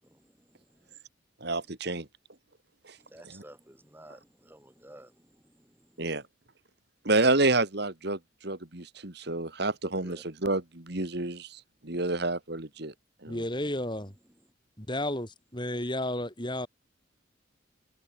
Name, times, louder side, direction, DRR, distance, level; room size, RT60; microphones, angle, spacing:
voice 1, 0.0-1.0 3.0-6.0 10.0-10.2, right 1 dB, 10° right, 3.7 m, -53 dB
voice 2, 1.4-2.1 2.8-3.0 3.2-3.4 6.0-6.2 7.0-12.9 13.2-13.4, right 2 dB, 55° right, 2.4 m, -29 dB
voice 3, 13.3-14.1 14.8-16.7, left 1 dB, 25° left, 6.8 m, -32 dB
head